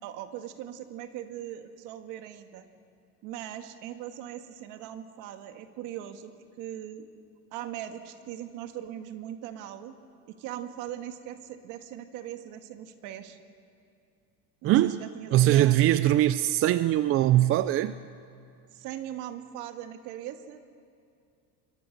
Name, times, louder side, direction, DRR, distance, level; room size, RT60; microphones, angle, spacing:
voice 1, 0.0-2.7 3.2-6.3 6.6-7.1 7.5-9.9 10.3-13.4 14.6-15.8 18.7-20.6, right 11 dB, 70° right, 7 dB, 1.8 m, -40 dB
voice 2, 14.6-15.0 15.3-17.9, right 14 dB, 40° right, 13 dB, 0.5 m, -22 dB
28.5 x 22.5 x 6.6 m, 2.4 s
cardioid pair, 140°, 33 cm